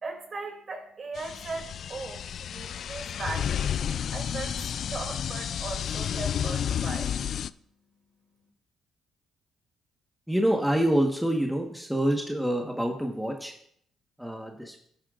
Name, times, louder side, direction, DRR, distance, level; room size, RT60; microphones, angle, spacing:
voice 1, 0.0-3.7 4.1-4.6 4.9-7.1, right 3 dB, 45° right, 3 dB, 2.8 m, -38 dB
sound 1, 1.1-7.5, left 9 dB, 60° left, 0.3 m, -31 dB
voice 2, 10.3-13.5 14.2-14.8, right 1 dB, ahead, 1 dB, 1.3 m, -26 dB
13.5 x 10.0 x 2.5 m, 0.67 s
cardioid pair, 90°, 0 cm